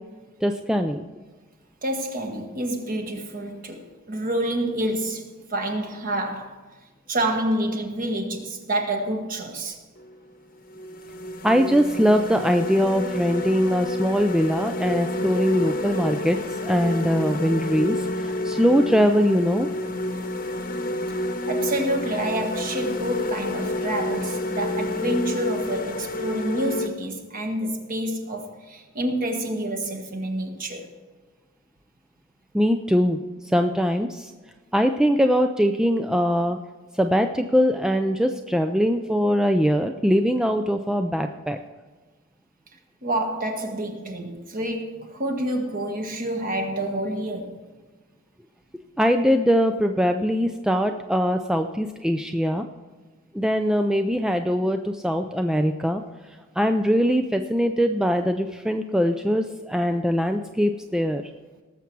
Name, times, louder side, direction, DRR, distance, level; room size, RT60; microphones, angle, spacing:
voice 1, 0.4-1.0 11.4-19.7 32.5-34.3 34.7-36.6 36.9-41.6 49.0-52.7 53.3-56.0 56.6-61.3, equal, 5° right, 0.3 m, -22 dB
voice 2, 1.8-6.6 7.1-9.8 21.5-30.9 43.0-47.6, right 1 dB, 40° right, 1.5 m, -28 dB
sound 1, 10.0-10.1 10.7-26.9, left 1 dB, 40° left, 1.0 m, -29 dB
18.5 x 7.2 x 4.6 m
head